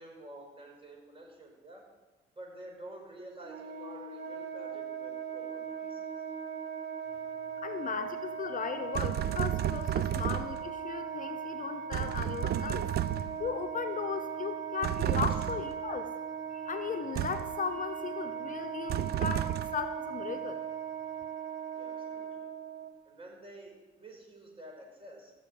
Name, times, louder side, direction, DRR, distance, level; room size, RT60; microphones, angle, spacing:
voice 1, 0.0-1.8 2.4-6.1 15.3-15.5 21.7-22.5 23.0-25.3, right 1 dB, 25° right, 0 dB, 4.8 m, -49 dB
Wind instrument woodwind instrument, 3.4-22.9, right 7 dB, 70° right, 1.7 m, -39 dB
voice 2, 7.6-12.9 13.4-16.1 16.5-20.6, left 6 dB, 40° left, 8 dB, 0.8 m, -36 dB
sound 1, 8.9-10.7 11.9-13.5 14.8-15.7 17.2-17.6 18.9-19.9, right 12 dB, 55° right, 0.4 m, -32 dB
14.0 x 6.5 x 8.5 m, 1.2 s
cardioid pair, 90°, 20 cm